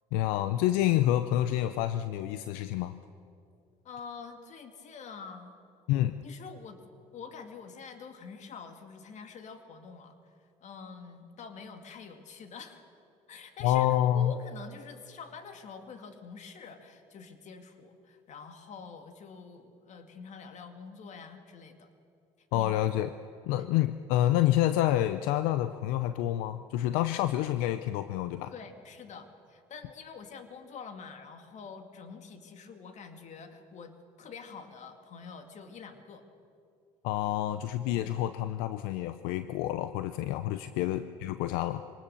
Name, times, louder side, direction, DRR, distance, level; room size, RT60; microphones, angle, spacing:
voice 1, 0.1-2.9 5.9-6.2 13.6-14.3 22.5-23.1 23.5-28.5 37.0-41.8, left 13 dB, 80° left, 12 dB, 0.6 m, -28 dB
voice 2, 3.8-5.6 6.2-6.8 7.1-12.8 13.3-21.9 22.5-22.9 23.6-23.7 28.5-36.3, left 5 dB, 55° left, 7 dB, 2.2 m, -46 dB
24.5 x 19.0 x 6.9 m, 2.5 s
supercardioid pair, 75°, 15 cm